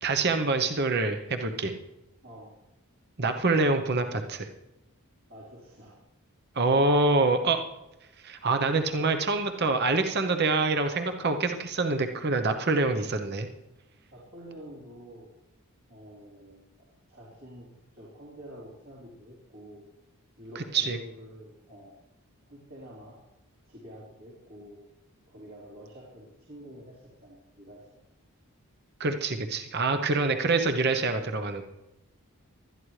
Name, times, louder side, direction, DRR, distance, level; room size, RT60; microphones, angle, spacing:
voice 1, 0.0-1.7 3.2-4.5 6.6-7.6 8.2-13.5 20.5-21.0 29.0-31.6, right 3 dB, 45° right, 7 dB, 0.8 m, -26 dB
voice 2, 5.3-6.0 14.1-15.3 15.9-17.7 17.9-19.8 20.4-22.0 22.5-23.2 23.7-24.8 25.3-27.9 29.9-30.1, equal, 65° right, -6 dB, 3.8 m, -48 dB
20.0 x 12.5 x 3.3 m, 0.96 s
head